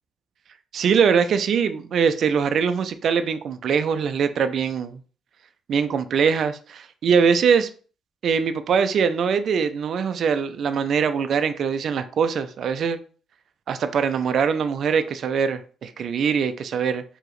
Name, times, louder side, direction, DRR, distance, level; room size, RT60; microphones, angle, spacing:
voice 1, 0.7-5.0 5.7-7.7 8.2-13.0 13.7-17.0, right 6 dB, 60° right, 0.4 m, -22 dB
4.7 x 2.9 x 3.0 m
cardioid pair, 90°, 0 cm